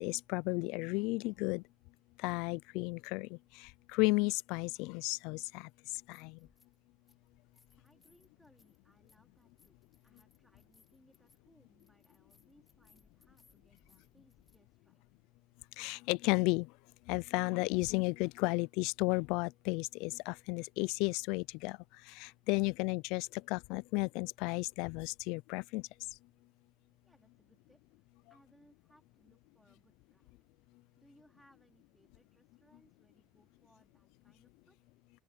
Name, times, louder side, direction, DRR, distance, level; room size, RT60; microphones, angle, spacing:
voice 1, 0.0-1.6 2.2-5.7 6.1-6.4 15.8-16.7 17.1-25.9, left 26 dB, 75° left, 0.3 m, -33 dB
sound 1, 5.9-6.8 7.1-14.6, left 4 dB, 15° left, 3.0 m, -70 dB
voice 2, 7.8-9.8 10.0-15.0 27.0-30.4 31.0-34.8, equal, ahead, 3.2 m, -68 dB
open air
cardioid pair, 165°, 0 cm